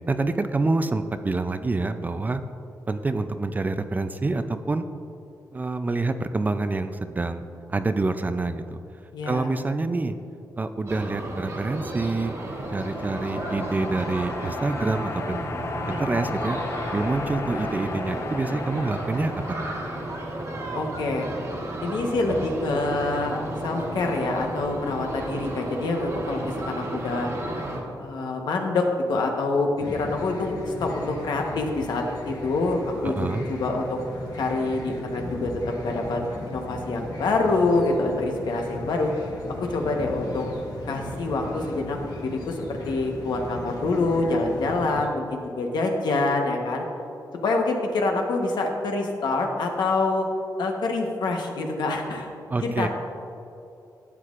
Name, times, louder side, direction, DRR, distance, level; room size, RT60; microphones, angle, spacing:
voice 1, 0.1-2.4 2.9-4.8 5.5-8.8 9.3-10.2 10.6-12.3 12.7-15.5 15.9-16.6 16.9-19.3 33.1-33.5 52.5-52.9, right 3 dB, 25° right, 9 dB, 0.4 m, -27 dB
voice 2, 9.1-9.5 20.7-21.3 21.8-27.3 28.0-34.0 34.4-36.2 36.5-39.1 39.6-40.5 40.9-46.8 47.4-50.3 50.6-52.3 52.6-52.9, left 3 dB, 80° left, 2 dB, 1.1 m, -26 dB
sound 1, 10.9-27.8, right 1 dB, 45° right, 1.4 m, -33 dB
sound 2, 11.8-21.4, left 4 dB, 35° left, 0.5 m, -36 dB
sound 3, 29.8-45.1, left 1 dB, 65° left, 1.4 m, -37 dB
12.0 x 8.3 x 2.5 m, 2.7 s
wide cardioid pair, 115°, 7 cm